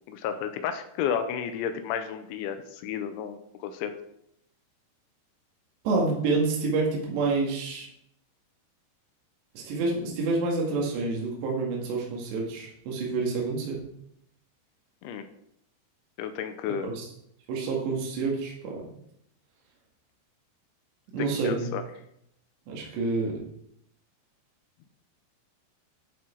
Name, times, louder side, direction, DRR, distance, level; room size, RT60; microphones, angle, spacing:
voice 1, 0.1-3.9 15.0-15.3 16.2-16.9 21.2-21.8, left 8 dB, 85° left, 8 dB, 3.1 m, -32 dB
voice 2, 5.8-7.9 9.5-13.8 16.8-17.1 17.5-18.8 21.1-21.7 22.7-23.4, right 3 dB, 65° right, -2 dB, 3.9 m, -28 dB
10.5 x 7.6 x 4.5 m, 0.73 s
omnidirectional pair, 5.5 m